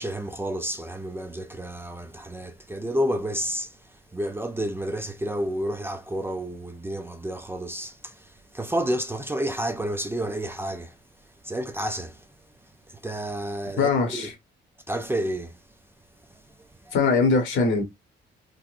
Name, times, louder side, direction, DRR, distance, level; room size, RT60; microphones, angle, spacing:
voice 1, 0.0-12.3 12.9-14.3 14.9-15.6 16.3-16.9, right 1 dB, 10° right, 0.4 m, -31 dB
voice 2, 13.8-14.3 16.9-17.8, left 4 dB, 75° left, 1.4 m, -21 dB
4.0 x 2.2 x 2.6 m
cardioid pair, 90°, 20 cm